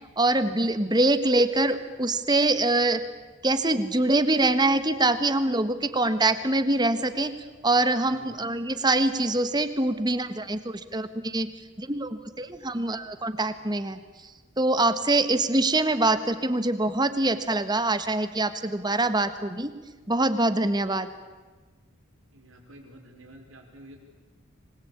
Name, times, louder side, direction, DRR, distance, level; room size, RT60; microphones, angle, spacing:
voice 1, 0.2-3.0 3.4-7.3 7.6-11.5 11.8-14.0 14.6-19.7 20.1-21.1, right 2 dB, 20° right, 11 dB, 1.5 m, -24 dB
voice 2, 22.3-24.0, right 1 dB, 80° right, 3 dB, 5.2 m, -49 dB
26.0 x 20.5 x 8.7 m, 1.3 s
head